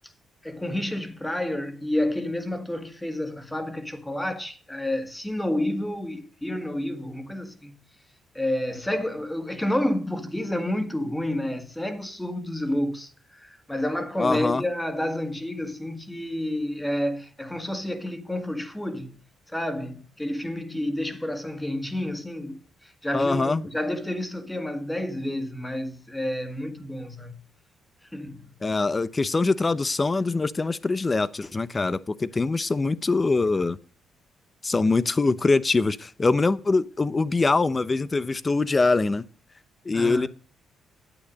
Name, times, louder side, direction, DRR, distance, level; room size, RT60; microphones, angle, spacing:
voice 1, 0.4-7.8 8.3-19.2 19.5-27.4 28.1-28.5 39.9-40.3, left 1 dB, 10° left, 1.8 m, -30 dB
voice 2, 14.2-14.6 23.1-23.7 28.6-33.8 34.6-39.2 39.9-40.3, left 3 dB, 25° left, 0.7 m, -23 dB
10.0 x 8.5 x 5.3 m
cardioid pair, 90°, 0 cm